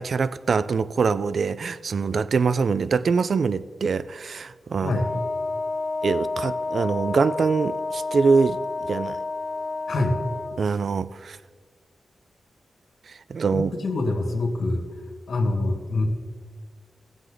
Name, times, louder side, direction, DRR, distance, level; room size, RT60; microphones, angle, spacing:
voice 1, 0.0-5.0 6.0-8.6 8.9-9.2 10.6-11.4 13.3-13.7, right 5 dB, 60° right, 16 dB, 0.3 m, -23 dB
Wind instrument woodwind instrument, 4.9-10.6, left 3 dB, 20° left, 0.6 m, -30 dB
voice 2, 13.5-14.8 15.3-16.1, left 2 dB, 70° left, 1 dB, 2.2 m, -25 dB
18.0 x 7.2 x 3.9 m, 1.5 s
wide cardioid pair, 120°, 0 cm